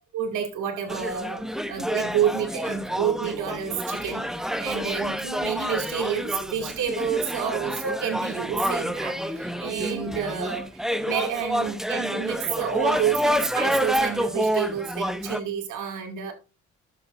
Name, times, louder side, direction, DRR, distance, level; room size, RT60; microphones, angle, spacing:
voice 1, 0.1-16.3, right 8 dB, 80° right, 2.5 m, -29 dB
sound 1, 0.9-15.4, equal, ahead, 0.8 m, -28 dB
11.0 x 7.8 x 2.6 m
cardioid pair, 90°, 30 cm